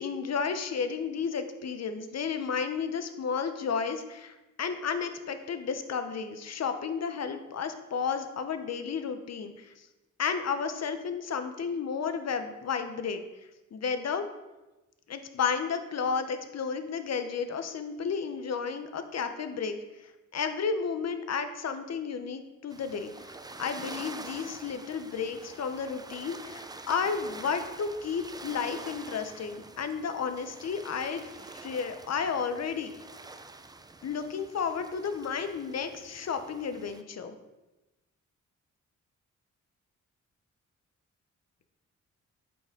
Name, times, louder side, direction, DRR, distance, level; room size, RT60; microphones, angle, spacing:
voice 1, 0.0-9.9 10.2-13.2 13.7-14.2 15.1-19.8 20.3-23.1 23.6-31.2 31.5-32.9 34.0-37.4, left 6 dB, 55° left, 9 dB, 0.8 m, -32 dB
sound 1, 22.7-37.0, right 3 dB, 15° right, 0.4 m, -46 dB
8.1 x 5.0 x 3.8 m, 1.0 s
cardioid pair, 70°, 31 cm